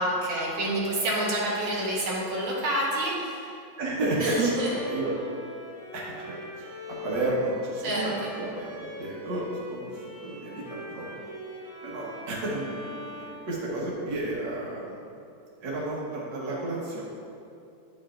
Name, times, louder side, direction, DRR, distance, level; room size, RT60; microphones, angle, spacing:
voice 1, 0.0-3.5 4.2-4.7 7.8-8.3, right 1 dB, 85° right, -5 dB, 2.1 m, -28 dB
voice 2, 3.8-4.6 4.9-5.1 5.9-6.4 7.0-11.2 11.8-15.0 15.6-17.1, right 1 dB, 65° right, -5 dB, 1.8 m, -32 dB
Bowed string instrument, 4.4-14.2, equal, 20° right, 1.4 m, -43 dB
10.0 x 5.7 x 2.5 m, 2.6 s
omnidirectional pair, 2.2 m